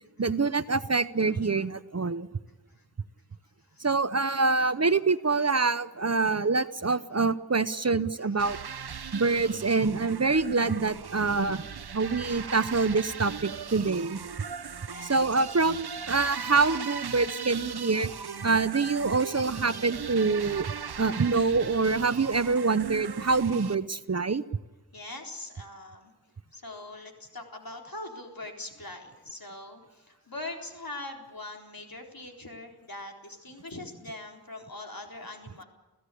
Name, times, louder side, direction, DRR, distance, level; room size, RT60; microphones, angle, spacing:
voice 1, 0.2-2.3 3.8-8.6 9.1-11.6 11.9-14.2 15.0-18.1 18.4-24.4, right 4 dB, 40° right, 15 dB, 0.7 m, -26 dB
sound 1, 8.4-23.8, right 6 dB, 70° right, 0.8 m, -39 dB
voice 2, 14.9-15.2 24.9-26.1 26.5-35.6, left 2 dB, 60° left, 2 dB, 4.0 m, -42 dB
30.0 x 15.5 x 8.5 m, 1.1 s
wide cardioid pair, 45°, 40 cm